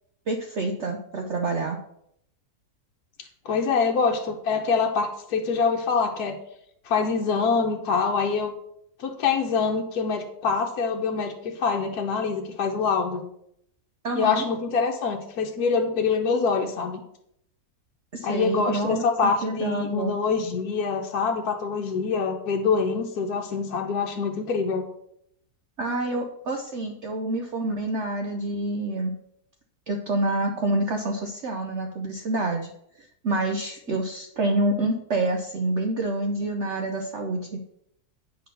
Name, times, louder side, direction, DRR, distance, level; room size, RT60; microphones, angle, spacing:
voice 1, 0.3-1.8 14.0-14.5 18.1-20.1 25.8-29.2 29.9-32.7 33.2-37.6, right 2 dB, 55° right, 3 dB, 1.0 m, -27 dB
voice 2, 3.4-6.4 6.9-8.5 9.0-13.2 14.1-17.0 18.2-24.8, left 5 dB, 70° left, 1 dB, 1.4 m, -25 dB
9.2 x 4.3 x 6.7 m, 0.74 s
omnidirectional pair, 1.7 m